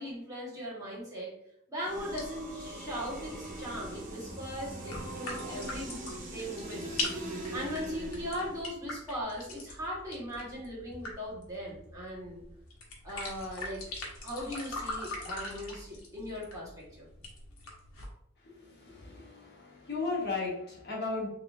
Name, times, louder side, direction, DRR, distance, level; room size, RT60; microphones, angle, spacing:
voice 1, 0.0-1.3 1.7-12.4 13.0-13.9 14.2-17.1, equal, 15° right, -7 dB, 1.3 m, -39 dB
sound 1, 1.8-8.7, right 1 dB, 40° right, 0.8 m, -41 dB
sound 2, 2.1-18.1, left 2 dB, 80° left, 1.0 m, -43 dB
voice 2, 18.8-21.3, left 3 dB, 55° left, -3 dB, 1.1 m, -35 dB
3.5 x 3.4 x 2.5 m, 0.73 s
head